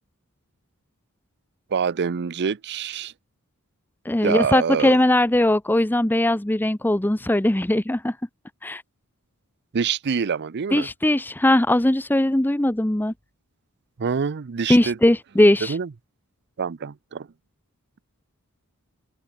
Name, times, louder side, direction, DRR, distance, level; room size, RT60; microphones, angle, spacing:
voice 1, 1.7-3.1 4.2-5.0 9.7-10.9 14.0-15.0 15.7-15.9 16.6-17.3, right 6 dB, 50° right, 0.5 m, -25 dB
voice 2, 4.1-8.1 8.6-8.8 10.7-13.1 14.7-15.7, left 1 dB, 10° left, 0.6 m, -20 dB
head